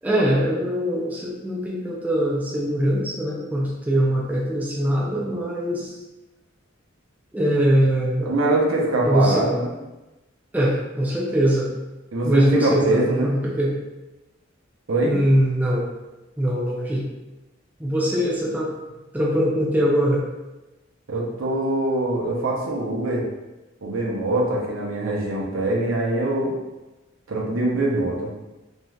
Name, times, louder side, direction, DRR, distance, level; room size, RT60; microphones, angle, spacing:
voice 1, 0.0-6.0 7.3-8.3 9.0-9.5 10.5-11.7 12.2-13.8 15.0-15.9 16.4-17.1 17.8-18.8 19.1-20.2, equal, 10° right, -4 dB, 0.4 m, -22 dB
voice 2, 8.2-9.7 12.1-13.3 14.9-15.2 21.1-23.2 23.8-26.5 27.3-28.3, right 2 dB, 75° right, -3 dB, 0.7 m, -23 dB
3.1 x 2.6 x 2.3 m, 1.1 s
head